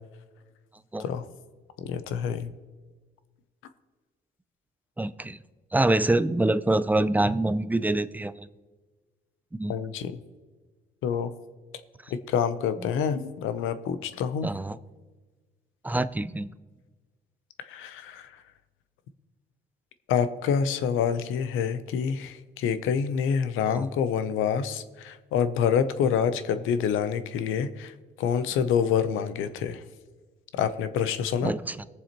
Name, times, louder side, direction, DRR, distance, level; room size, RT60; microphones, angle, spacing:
voice 1, 1.8-2.5 9.7-10.2 11.0-11.3 12.3-14.5 17.7-18.3 20.1-27.9 28.2-29.8 30.5-31.5, left 7 dB, 90° left, 12 dB, 0.7 m, -27 dB
voice 2, 5.0-5.4 5.7-8.5 9.6-9.8 12.8-12.9 14.4-14.8 15.8-16.5 23.7-23.9 31.4-31.9, right 2 dB, 10° right, 14 dB, 0.4 m, -25 dB
21.0 x 7.2 x 3.0 m, 1.3 s
cardioid pair, 90°, 20 cm